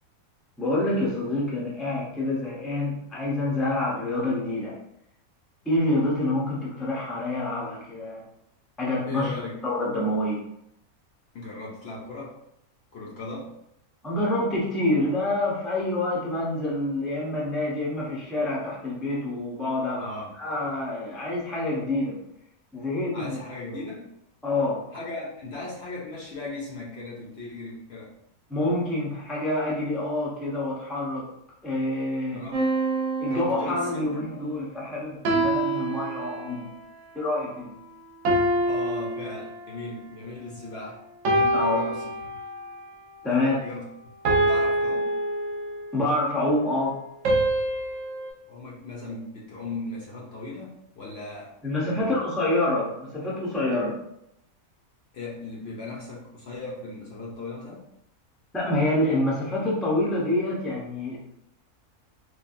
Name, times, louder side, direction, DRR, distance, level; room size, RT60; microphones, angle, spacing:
voice 1, 0.6-4.8 5.6-8.3 8.8-9.3 9.6-10.4 14.0-22.2 22.7-23.4 23.7-23.8 24.4-24.8 28.5-31.3 31.6-32.4 33.2-36.7 37.1-37.7 41.5-41.8 43.2-43.6 45.9-47.0 51.6-54.0 58.5-61.2, left 1 dB, ahead, -5 dB, 0.3 m, -27 dB
voice 2, 9.1-9.6 11.3-12.4 12.9-13.5 20.0-20.3 23.1-24.1 24.9-28.1 32.3-32.6 33.2-34.3 38.7-41.0 41.3-42.1 43.2-43.8 44.4-45.1 48.5-51.6 51.9-52.2 55.1-57.9, left 2 dB, 60° left, -3 dB, 0.7 m, -37 dB
sound 1, 32.5-34.2 35.2-36.8 38.2-39.9 41.2-42.8 44.2-46.0 47.2-48.3, right 1 dB, 65° right, 0.9 m, -26 dB
3.1 x 2.3 x 2.5 m, 0.78 s
omnidirectional pair, 1.5 m